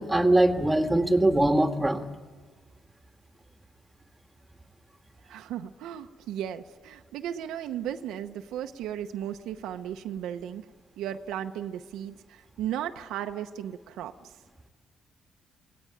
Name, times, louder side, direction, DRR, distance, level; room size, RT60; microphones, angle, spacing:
voice 1, 0.0-2.1, right 1 dB, 10° right, 6 dB, 1.8 m, -22 dB
voice 2, 5.3-10.7 11.0-14.3, right 10 dB, 90° right, 7 dB, 0.8 m, -35 dB
25.5 x 18.5 x 8.9 m, 1.5 s
cardioid pair, 90°, 0 cm